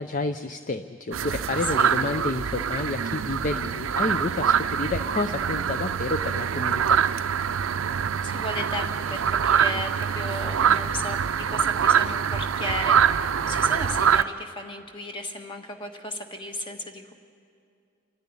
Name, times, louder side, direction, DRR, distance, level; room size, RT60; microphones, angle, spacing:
voice 1, 0.0-7.0, left 3 dB, 40° left, 10 dB, 0.4 m, -30 dB
sound 1, 1.1-14.2, right 8 dB, 70° right, 0.5 m, -24 dB
voice 2, 1.6-2.0 7.6-7.7 8.2-17.1, left 1 dB, 25° left, 4 dB, 1.4 m, -35 dB
26.5 x 10.5 x 9.7 m, 2.4 s
head